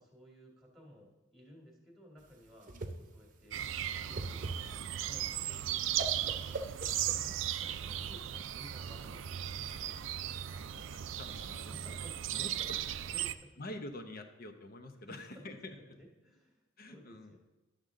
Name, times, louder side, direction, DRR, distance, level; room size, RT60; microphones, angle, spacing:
voice 1, 0.0-3.6 4.0-10.0 11.7-12.7 13.1-13.5 15.1-15.4 15.9-17.4, equal, ahead, -1 dB, 1.7 m, -57 dB
Whoosh swoosh swish, 2.2-7.7, right 2 dB, 40° right, 0.8 m, -43 dB
sound 1, 3.5-13.3, right 11 dB, 75° right, 0.4 m, -37 dB
voice 2, 10.5-11.8 12.3-12.8 13.6-15.7 16.8-17.4, left 1 dB, 50° left, 7 dB, 0.8 m, -47 dB
11.0 x 6.6 x 3.7 m, 1.1 s
head